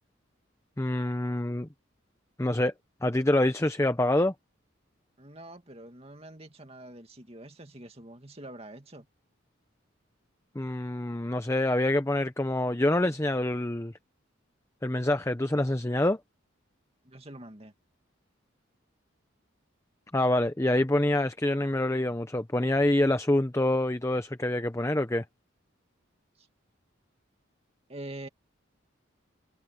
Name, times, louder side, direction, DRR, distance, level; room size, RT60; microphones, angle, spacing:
voice 1, 0.8-1.7 2.4-2.7 3.0-4.3 10.6-13.9 14.8-16.2 20.1-25.2, left 1 dB, 15° left, 0.7 m, -26 dB
voice 2, 5.2-9.1 17.0-17.7 26.4-26.5 27.9-28.3, right 1 dB, 30° right, 2.4 m, -45 dB
head